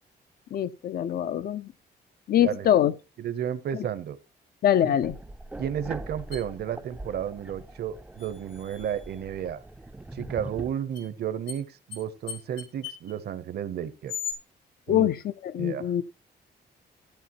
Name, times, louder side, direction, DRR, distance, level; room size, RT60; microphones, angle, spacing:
voice 1, 0.5-1.7 2.3-2.9 3.7-3.9 4.6-5.2 14.9-16.0, left 10 dB, 60° left, 0.5 m, -24 dB
voice 2, 2.4-2.7 3.2-4.2 5.6-9.6 10.1-14.1 14.9-15.1 15.6-15.8, right 9 dB, 65° right, 0.8 m, -32 dB
sound 1, 5.0-10.7, right 2 dB, 5° right, 0.4 m, -42 dB
sound 2, 6.3-6.4 8.2-9.2 10.9-11.0 11.5-11.6 11.9-12.0 12.3-13.1 14.1-14.3, left 7 dB, 85° left, 3.0 m, -38 dB
13.5 x 8.9 x 3.0 m
wide cardioid pair, 175°, 18 cm